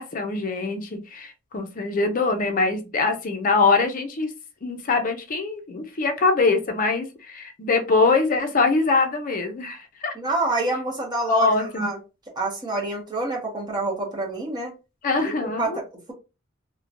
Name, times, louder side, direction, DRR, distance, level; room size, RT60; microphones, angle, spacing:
voice 1, 0.0-4.3 4.6-10.1 11.3-11.9 15.0-15.8, left 3 dB, 40° left, 0.5 m, -23 dB
voice 2, 10.1-12.0 12.4-14.7 15.2-15.8, right 2 dB, 20° right, 0.9 m, -27 dB
3.0 x 2.1 x 2.5 m
head